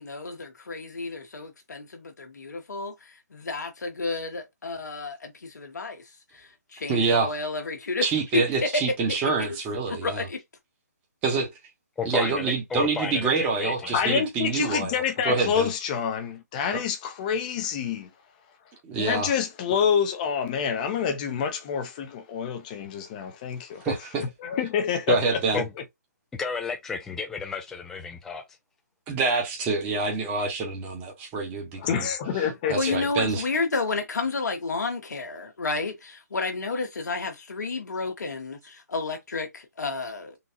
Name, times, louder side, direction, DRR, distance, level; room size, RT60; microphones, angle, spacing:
voice 1, 0.0-6.0 6.3-8.1 8.3-8.7 9.1-9.3 9.9-10.4 32.7-40.4, left 3 dB, 80° left, 1.2 m, -31 dB
voice 2, 6.9-7.3 8.0-10.3 11.2-11.5 12.0-15.7 16.7-16.8 18.8-19.3 23.8-24.2 25.1-25.6 29.1-32.1 32.7-33.4, right 4 dB, 15° right, 1.1 m, -26 dB
voice 3, 12.0-13.3 13.6-14.2 25.5-25.7 26.4-28.4, left 5 dB, 5° left, 0.3 m, -32 dB
voice 4, 13.9-18.1 19.0-23.8 24.4-25.2 25.5-25.6 31.8-33.0, left 7 dB, 30° left, 0.7 m, -27 dB
3.9 x 2.3 x 2.8 m
hypercardioid pair, 150°, 9 cm